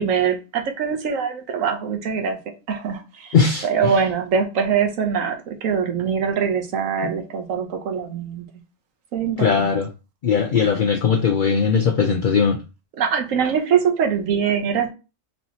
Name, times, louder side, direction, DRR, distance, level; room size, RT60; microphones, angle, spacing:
voice 1, 0.0-2.4 2.7-8.4 9.1-9.7 12.9-14.9, right 7 dB, 80° right, 5 dB, 1.2 m, -23 dB
voice 2, 3.3-3.9 9.4-9.9 10.2-12.6, left 6 dB, 55° left, 3 dB, 0.5 m, -19 dB
4.2 x 3.4 x 2.8 m, 0.30 s
omnidirectional pair, 1.4 m